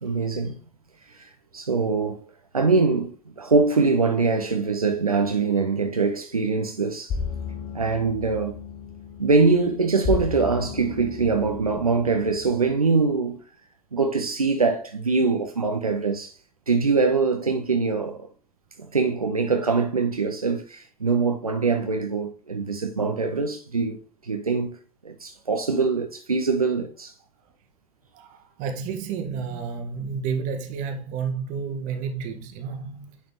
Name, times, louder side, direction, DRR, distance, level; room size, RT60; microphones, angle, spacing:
voice 1, 0.0-0.6 1.1-2.2 2.5-7.2 7.7-8.6 9.2-13.4 13.9-16.4 16.7-18.3 18.9-24.0 24.2-24.8 25.0-27.1, right 4 dB, 85° right, 0.6 m, -23 dB
sound 1, 7.1-12.8, left 5 dB, 35° left, 0.9 m, -34 dB
voice 2, 28.1-33.2, right 6 dB, 45° right, 1.5 m, -31 dB
9.4 x 4.2 x 3.0 m
figure-of-eight pair, 80°, 18 cm